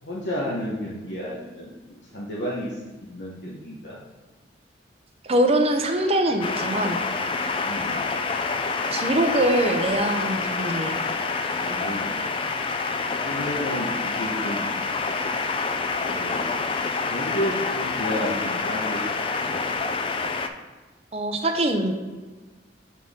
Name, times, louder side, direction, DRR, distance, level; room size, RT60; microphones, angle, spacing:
voice 1, 0.0-2.7 3.0-4.0 7.6-8.0 11.6-12.6 13.2-14.7 16.1-16.5 17.1-19.0 19.4-19.7, equal, 80° left, -6 dB, 1.1 m, -32 dB
voice 2, 5.2-7.0 8.9-11.0 21.1-21.9, right 1 dB, 35° right, 5 dB, 0.6 m, -23 dB
sound 1, 5.6-19.8, left 2 dB, 50° left, 2.0 m, -44 dB
sound 2, 6.4-20.5, left 4 dB, 30° left, 0.3 m, -27 dB
7.2 x 4.3 x 3.6 m, 1.3 s
head